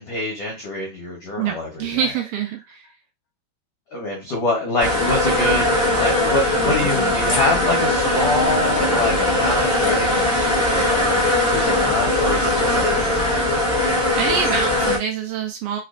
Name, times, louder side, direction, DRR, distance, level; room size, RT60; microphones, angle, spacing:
voice 1, 0.0-1.9 3.9-13.4, left 2 dB, 80° left, -2 dB, 1.3 m, -25 dB
voice 2, 1.4-2.9 14.2-15.8, right 7 dB, 80° right, 3 dB, 2.1 m, -25 dB
sound 1, 4.8-15.0, left 1 dB, 60° left, 0.6 m, -20 dB
5.7 x 2.2 x 2.4 m, 0.24 s
omnidirectional pair, 4.4 m